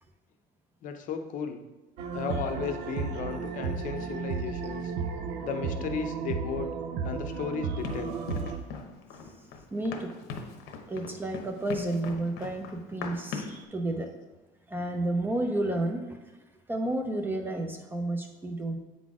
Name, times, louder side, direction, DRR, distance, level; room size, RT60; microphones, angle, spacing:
voice 1, 0.8-1.6 2.1-4.9 5.4-6.7 7.0-8.2, left 6 dB, 50° left, 6 dB, 0.6 m, -34 dB
sound 1, 2.0-8.6, right 5 dB, 80° right, 0.7 m, -34 dB
Run, 7.8-13.6, left 5 dB, 75° left, 0.9 m, -40 dB
voice 2, 9.7-10.1 10.9-14.1 14.7-16.4 16.7-18.8, right 1 dB, 10° right, 4 dB, 0.5 m, -31 dB
8.1 x 4.1 x 4.8 m, 1.1 s
cardioid pair, 165°, 17 cm